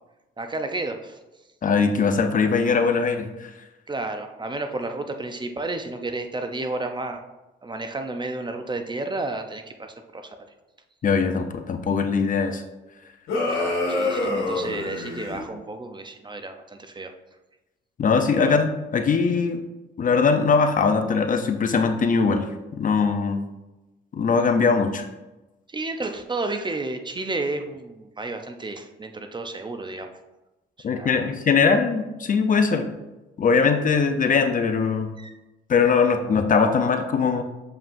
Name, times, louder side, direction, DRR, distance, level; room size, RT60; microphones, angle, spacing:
voice 1, 0.4-1.2 3.9-7.2 7.6-10.4 13.5-17.1 18.4-18.6 25.7-30.1 30.8-31.3 35.2-35.4, right 2 dB, 25° right, 6 dB, 0.6 m, -32 dB
voice 2, 1.6-3.5 11.0-12.6 18.0-19.6 20.0-22.5 22.7-23.4 24.1-25.1 30.8-32.9 33.4-35.1 35.7-37.4, left 5 dB, 40° left, 7 dB, 0.6 m, -21 dB
sound 1, 13.3-15.4, left 2 dB, 85° left, 1.9 m, -26 dB
7.0 x 5.4 x 2.6 m, 1.0 s
cardioid pair, 90°, 20 cm